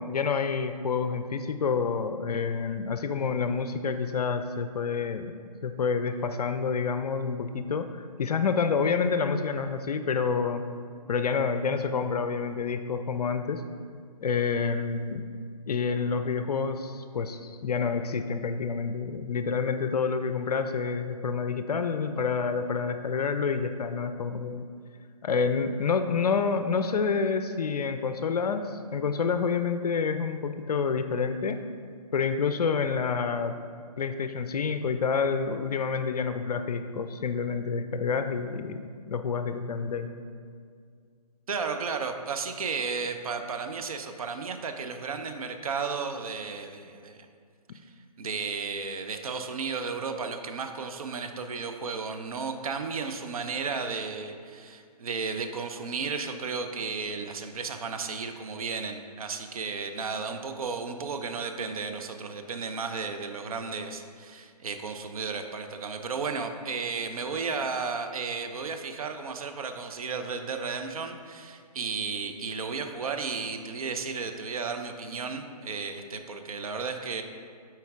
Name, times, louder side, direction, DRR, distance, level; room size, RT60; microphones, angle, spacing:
voice 1, 0.0-5.3 5.6-10.6 11.1-13.6 14.2-15.3 15.7-24.7 25.2-31.6 32.1-33.6 34.0-40.1, left 5 dB, 70° left, 9 dB, 0.4 m, -28 dB
voice 2, 41.5-47.2 48.2-77.2, right 5 dB, 60° right, 6 dB, 0.6 m, -33 dB
8.0 x 4.5 x 3.6 m, 2.2 s
hypercardioid pair, 145°, 21 cm